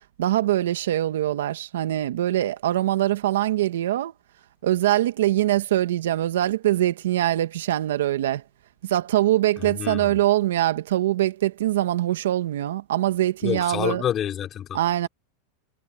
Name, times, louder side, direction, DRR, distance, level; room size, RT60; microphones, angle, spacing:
voice 1, 0.2-4.1 4.6-8.4 8.8-14.0 14.7-15.1, right 13 dB, 90° right, 1.8 m, -23 dB
voice 2, 9.6-10.2 13.4-14.8, left 10 dB, 30° left, 3.9 m, -28 dB
supercardioid pair, 145°, 0 cm